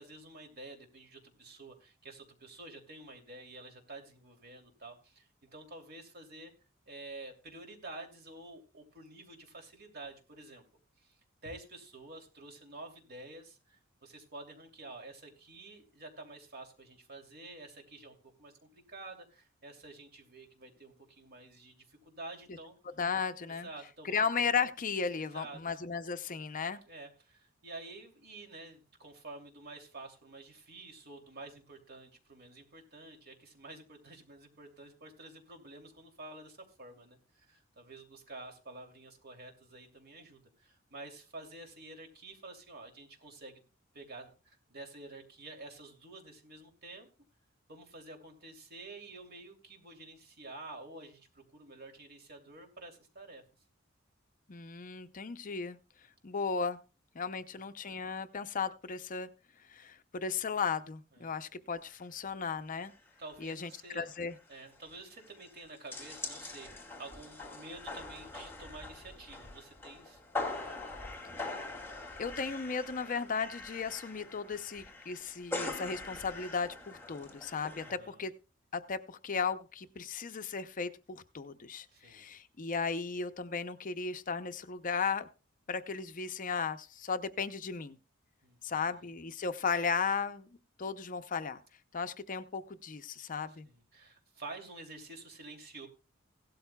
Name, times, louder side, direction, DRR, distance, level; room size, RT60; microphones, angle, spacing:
voice 1, 0.0-6.5 6.9-10.6 11.0-11.1 11.4-22.7 23.5-24.2 25.1-25.6 26.8-43.6 43.9-47.1 47.7-53.4 57.5-57.6 61.1-61.3 63.2-64.1 64.5-70.2 77.8-78.2 81.9-82.3 88.4-89.1 93.6-95.9, right 2 dB, 50° right, 3 dB, 2.8 m, -49 dB
voice 2, 23.0-23.7 24.0-26.8 54.5-55.8 56.2-56.8 57.1-59.3 59.7-62.9 63.4-64.4 72.2-78.3 78.7-85.3 85.7-88.0 88.6-90.5 90.8-91.6 91.9-93.7, left 5 dB, 40° left, 11 dB, 0.6 m, -35 dB
sound 1, 61.8-62.0 62.3-62.4 62.8-63.1 63.4-63.5 63.8-77.9, left 3 dB, 10° left, 2.5 m, -43 dB
16.5 x 12.5 x 2.3 m, 0.33 s
head